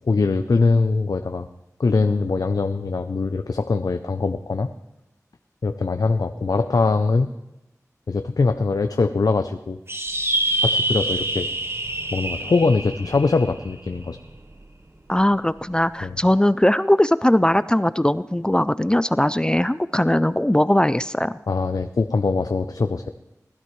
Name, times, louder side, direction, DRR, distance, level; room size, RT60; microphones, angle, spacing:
voice 1, 0.1-1.5 1.8-4.7 5.6-7.3 8.1-9.8 10.6-11.5 12.1-14.2 16.0-16.2 21.5-23.1, left 4 dB, 85° left, 8 dB, 0.5 m, -22 dB
sound 1, 9.9-14.6, right 1 dB, 40° right, 1.0 m, -26 dB
voice 2, 15.1-21.3, left 1 dB, 15° left, 15 dB, 0.3 m, -19 dB
19.5 x 12.0 x 3.1 m, 0.93 s
wide cardioid pair, 45°, 6 cm